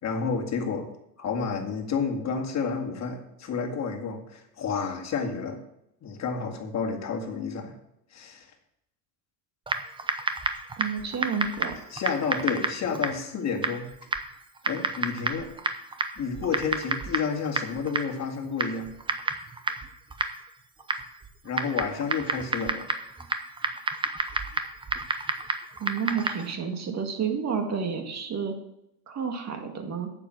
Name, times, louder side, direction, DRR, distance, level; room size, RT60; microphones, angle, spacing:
voice 1, 0.0-0.9 1.2-5.6 6.0-7.8 8.1-8.5 11.9-13.9 14.7-15.5 16.2-18.9 21.4-22.9, left 5 dB, 35° left, 4 dB, 2.1 m, -30 dB
Typing, 9.7-26.5, right 3 dB, 10° right, 0.7 m, -31 dB
voice 2, 10.8-11.8 25.8-28.5 29.1-30.1, right 6 dB, 35° right, 4 dB, 2.0 m, -30 dB
8.6 x 7.5 x 6.2 m, 0.80 s
supercardioid pair, 120°, 47 cm